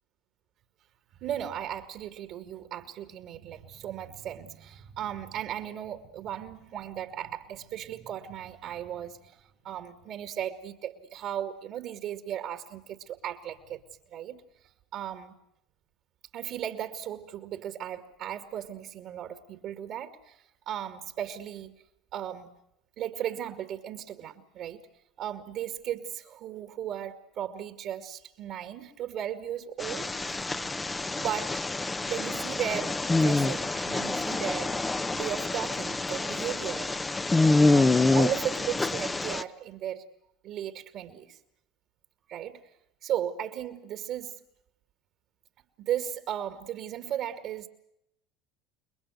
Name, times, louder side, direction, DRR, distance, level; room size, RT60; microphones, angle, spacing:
voice 1, 1.2-13.8 14.1-14.4 14.9-15.4 16.3-21.7 22.1-22.5 23.0-24.8 25.2-30.1 31.1-31.6 32.1-34.8 35.1-36.9 37.7-40.0 40.4-41.4 42.3-42.6 43.0-44.4 45.8-47.7, right 10 dB, 60° right, 8 dB, 2.1 m, -36 dB
sound 1, 29.8-39.4, left 2 dB, 15° left, 0.9 m, -26 dB
29.0 x 21.5 x 6.5 m, 0.80 s
hypercardioid pair, 85°, 0 cm